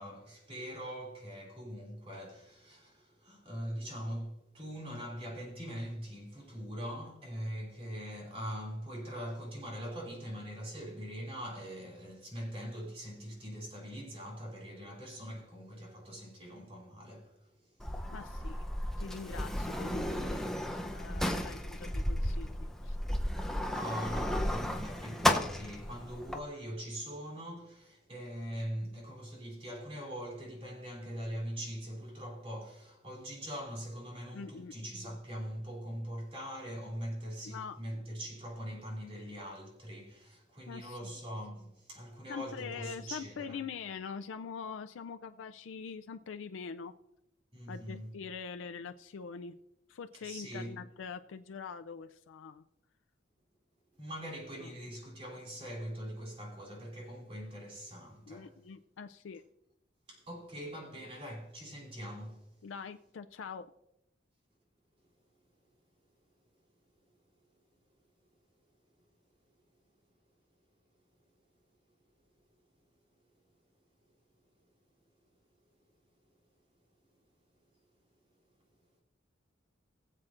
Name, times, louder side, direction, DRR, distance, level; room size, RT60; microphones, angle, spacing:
voice 1, 0.0-17.4 23.7-43.6 47.5-48.2 50.1-50.7 54.0-58.5 60.1-62.5, equal, 30° right, 3.1 m, -42 dB
Sliding door, 17.8-26.4, equal, ahead, 0.6 m, -34 dB
voice 2, 18.1-18.6 19.0-23.0 34.3-34.7 37.4-37.8 40.7-41.1 42.3-46.9 47.7-49.5 49.9-52.6 54.6-54.7 58.3-59.4 62.6-63.7, left 5 dB, 85° left, 0.4 m, -44 dB
21.0 x 7.5 x 2.5 m
head